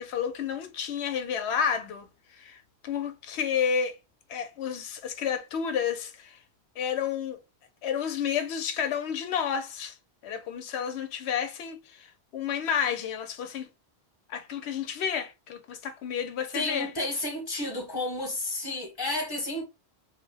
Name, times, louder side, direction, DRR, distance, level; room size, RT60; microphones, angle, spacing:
voice 1, 0.0-4.0 4.3-6.4 6.8-7.4 7.8-10.0 10.2-13.7 14.3-16.9, left 7 dB, 90° left, 0.8 m, -31 dB
voice 2, 16.5-19.6, left 2 dB, 25° left, 0.9 m, -31 dB
2.6 x 2.0 x 3.2 m
omnidirectional pair, 1.1 m